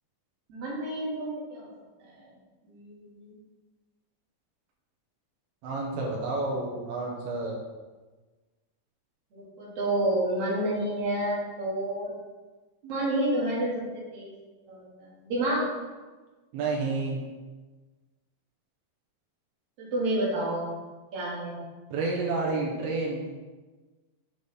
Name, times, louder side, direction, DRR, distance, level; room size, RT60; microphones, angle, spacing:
voice 1, 0.5-1.7 2.0-2.3 2.6-3.3 9.3-12.1 12.8-14.3 14.7-15.7 19.8-20.7 21.1-21.6, right 1 dB, 60° right, -6 dB, 1.6 m, -30 dB
voice 2, 5.6-7.6 16.5-17.2 21.9-23.2, right 3 dB, 85° right, -2 dB, 2.2 m, -30 dB
9.6 x 3.3 x 4.1 m, 1.3 s
omnidirectional pair, 5.5 m